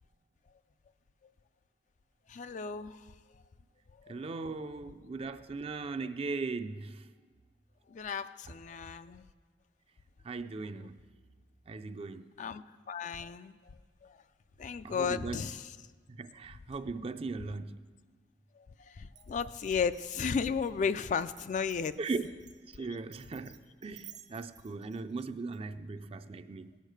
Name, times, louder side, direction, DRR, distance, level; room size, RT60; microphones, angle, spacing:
voice 1, 2.3-3.1 4.0-4.2 7.9-9.3 12.4-13.6 14.0-14.2 14.6-15.7 18.6-22.0 22.8-23.0, left 6 dB, 45° left, 0.3 m, -34 dB
voice 2, 4.1-7.1 10.2-11.0 11.7-12.3 14.8-15.5 16.1-17.7 22.0-22.3 22.7-26.7, right 3 dB, 35° right, 0.4 m, -38 dB
Glass, 19.2-25.6, right 12 dB, 70° right, 1.1 m, -56 dB
16.5 x 6.5 x 6.5 m
head